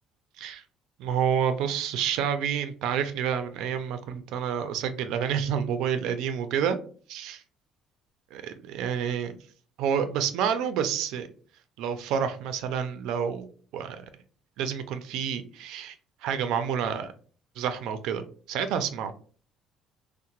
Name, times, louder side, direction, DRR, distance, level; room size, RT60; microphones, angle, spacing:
voice 1, 1.0-6.8 7.1-7.4 8.3-9.4 9.8-11.3 11.8-13.5 13.7-14.0 14.6-15.9 16.2-17.1 17.6-19.1, right 8 dB, 75° right, 9 dB, 0.4 m, -29 dB
2.8 x 2.0 x 2.8 m, 0.42 s
cardioid pair, 170°, 0 cm